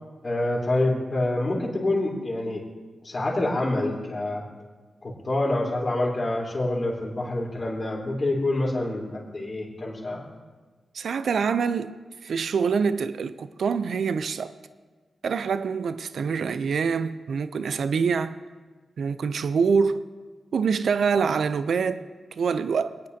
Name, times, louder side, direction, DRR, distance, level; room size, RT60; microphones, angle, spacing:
voice 1, 0.2-2.6 3.0-4.4 5.0-10.2, left 2 dB, 50° left, 3.7 m, -26 dB
voice 2, 10.9-14.5 15.2-18.4 19.0-20.0 20.5-23.0, right 5 dB, 75° right, 0.4 m, -25 dB
23.5 x 9.1 x 2.8 m
cardioid pair, 50°, 0 cm